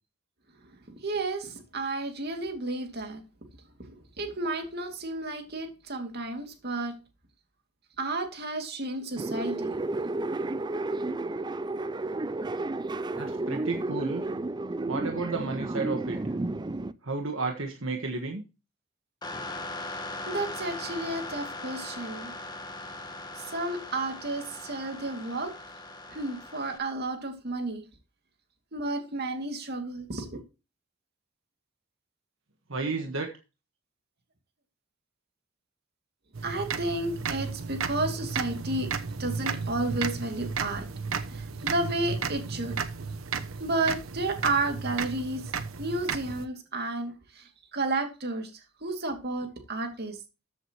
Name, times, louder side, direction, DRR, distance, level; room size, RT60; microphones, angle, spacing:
voice 1, 1.0-3.2 3.9-6.9 8.0-9.7 20.3-22.3 23.3-25.6 26.1-27.8 28.7-30.4 36.4-38.9 39.2-40.9 41.3-42.8 43.6-45.5 45.8-50.2, right 2 dB, 50° right, 2.5 m, -32 dB
sound 1, 9.2-16.9, right 2 dB, 20° right, 0.4 m, -32 dB
voice 2, 13.1-14.2 14.9-16.2 17.0-18.4 32.7-33.3, right 3 dB, 70° right, 1.5 m, -32 dB
sound 2, 19.2-26.8, left 2 dB, 20° left, 1.4 m, -39 dB
sound 3, 36.3-46.5, right 5 dB, 90° right, 1.0 m, -34 dB
14.0 x 7.8 x 3.0 m
head